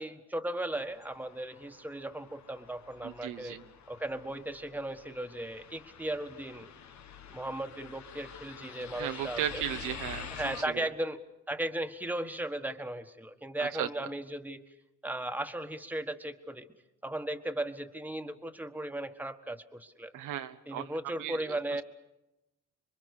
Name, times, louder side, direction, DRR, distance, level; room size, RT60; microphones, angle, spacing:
voice 1, 0.0-3.6 3.9-6.7 7.3-9.6 10.3-11.2 11.5-14.6 15.0-16.7 17.0-20.1 20.7-21.8, right 1 dB, 5° right, 7 dB, 1.6 m, -36 dB
sound 1, 0.7-10.6, left 7 dB, 65° left, 1.7 m, -47 dB
voice 2, 3.0-3.6 9.0-10.8 13.6-13.9 20.1-20.9 21.2-21.6, right 11 dB, 90° right, 9 dB, 1.2 m, -36 dB
27.0 x 23.0 x 6.7 m, 0.91 s
cardioid pair, 90°, 30 cm